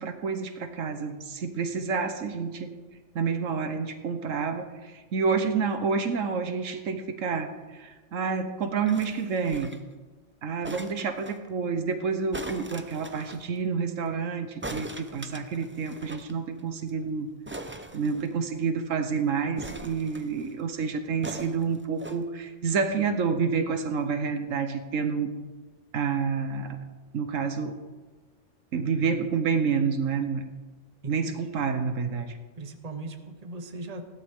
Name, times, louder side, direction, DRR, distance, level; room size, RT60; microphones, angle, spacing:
voice 1, 0.0-2.8 3.1-9.7 10.4-17.3 17.9-25.3 25.9-26.8 27.1-27.8 28.7-30.4 31.1-32.4, right 5 dB, 80° right, 8 dB, 1.3 m, -29 dB
sound 1, 8.9-9.9 10.6-11.4 12.3-13.4 14.6-16.3 16.6-16.7 16.9-17.0 17.5-18.6 19.6-20.5 21.2-22.2 22.9-23.0, right 1 dB, 15° right, 0.5 m, -40 dB
voice 2, 31.0-31.6 32.6-34.1, right 2 dB, 35° right, 6 dB, 1.1 m, -39 dB
16.0 x 12.0 x 3.6 m, 1.3 s
omnidirectional pair, 1.3 m